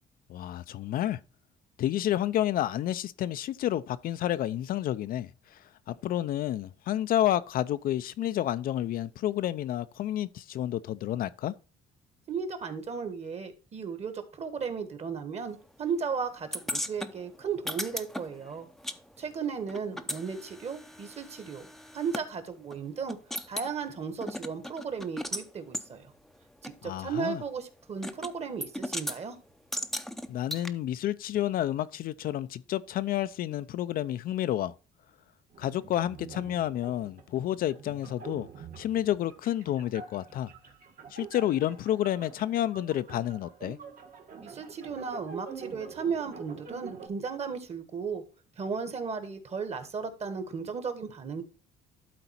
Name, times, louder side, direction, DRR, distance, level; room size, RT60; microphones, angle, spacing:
voice 1, 0.3-1.2 1.8-5.6 5.9-11.5 26.8-27.4 30.3-34.7 35.6-40.5 41.1-43.8, left 12 dB, 60° left, 0.4 m, -30 dB
voice 2, 12.3-18.7 19.2-21.7 21.9-23.2 23.5-26.1 26.6-29.4 44.4-48.2 48.6-51.4, right 5 dB, 40° right, 1.5 m, -35 dB
sound 1, 16.5-19.0 19.2-22.3 22.7-22.8 23.1-23.7 24.2-25.5 25.7-25.9 26.6-26.7 28.0-28.3 28.6-29.2 29.7-30.7, left 1 dB, ahead, 0.6 m, -36 dB
sound 2, 35.5-47.1, right 6 dB, 60° right, 1.8 m, -46 dB
12.0 x 4.0 x 4.2 m
cardioid pair, 110°, 17 cm